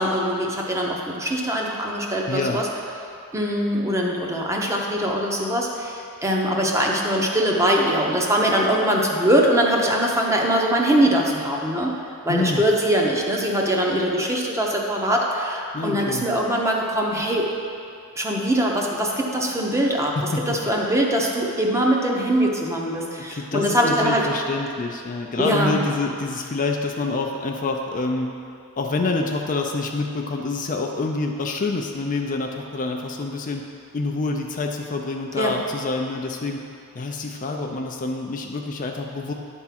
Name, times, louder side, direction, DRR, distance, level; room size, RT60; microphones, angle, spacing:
voice 1, 0.0-2.7 3.3-11.9 12.2-17.5 18.2-20.2 20.5-24.3 25.4-25.8 35.4-35.5, equal, 15° right, -1 dB, 0.8 m, -22 dB
voice 2, 2.3-2.6 12.3-12.6 15.7-16.3 20.2-20.7 23.3-28.3 28.8-33.6 33.9-36.6 36.9-39.3, left 3 dB, 35° left, 2 dB, 0.4 m, -27 dB
9.9 x 3.6 x 5.8 m, 2.6 s
head